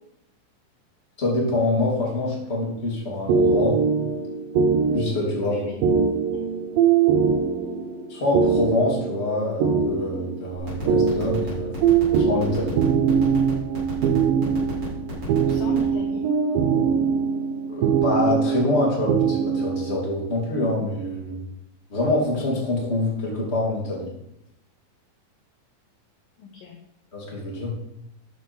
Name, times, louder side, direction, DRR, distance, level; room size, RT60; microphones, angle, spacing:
voice 1, 1.2-3.8 4.9-5.6 8.1-11.7 12.2-12.8 17.7-21.4 21.9-24.1 27.1-27.7, left 2 dB, 20° left, -4 dB, 2.4 m, -25 dB
sound 1, 3.3-20.0, right 6 dB, 85° right, 2.0 m, -22 dB
voice 2, 5.4-6.2 15.4-16.3 26.4-26.8, left 2 dB, 75° left, 2 dB, 2.2 m, -37 dB
sound 2, 10.7-15.9, right 2 dB, 25° right, 4.5 m, -35 dB
12.5 x 7.5 x 4.5 m, 0.80 s
omnidirectional pair, 5.3 m